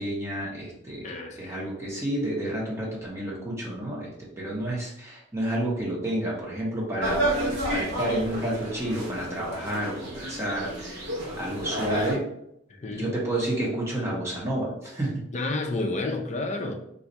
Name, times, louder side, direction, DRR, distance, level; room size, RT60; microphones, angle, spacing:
voice 1, 0.0-1.1 1.3-4.1 4.4-11.0 11.4-12.2 12.9-15.2, right 1 dB, 15° right, -5 dB, 0.9 m, -30 dB
voice 2, 1.0-1.6 12.7-13.1 15.3-16.8, left 2 dB, 35° left, 2 dB, 0.5 m, -30 dB
sound 1, 7.0-12.2, right 1 dB, 60° right, 1.0 m, -30 dB
2.6 x 2.3 x 4.1 m, 0.76 s
head